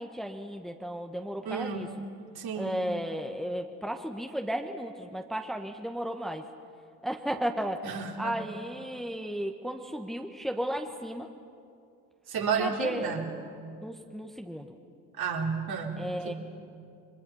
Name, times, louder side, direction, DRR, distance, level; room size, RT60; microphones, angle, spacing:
voice 1, 0.0-1.9 2.5-6.4 7.0-7.8 8.2-11.3 12.6-13.1 13.8-14.7 16.0-16.3, equal, ahead, 4 dB, 1.5 m, -34 dB
voice 2, 1.5-1.9 2.4-2.9 7.8-8.4 12.3-13.3 15.2-16.3, right 5 dB, 50° right, 1 dB, 3.4 m, -32 dB
29.5 x 23.5 x 5.7 m, 2.5 s
hypercardioid pair, 60°, 47 cm